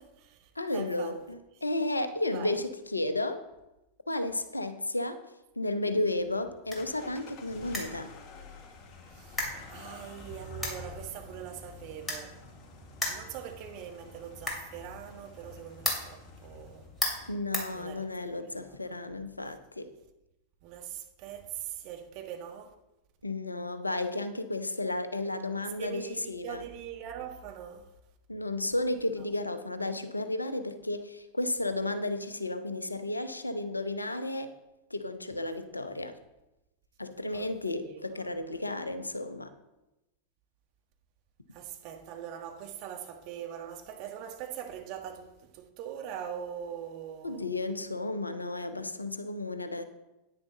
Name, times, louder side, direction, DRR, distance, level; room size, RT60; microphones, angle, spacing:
voice 1, 0.0-1.2 2.3-2.6 9.1-12.4 13.1-16.9 17.7-18.1 18.5-18.9 20.6-22.7 25.6-27.9 37.3-38.4 41.5-47.4, right 9 dB, 45° right, 1.3 m, -42 dB
voice 2, 0.6-3.4 4.1-8.1 17.3-19.9 23.2-26.0 26.3-26.6 28.3-34.5 34.9-36.1 37.0-39.5 47.2-49.8, left 2 dB, 80° left, 0.7 m, -33 dB
sound 1, 6.1-18.4, left 1 dB, 10° left, 3.0 m, -39 dB
sound 2, 6.8-17.0, left 5 dB, 35° left, 1.5 m, -52 dB
9.8 x 9.6 x 3.9 m
figure-of-eight pair, 90°, 0 cm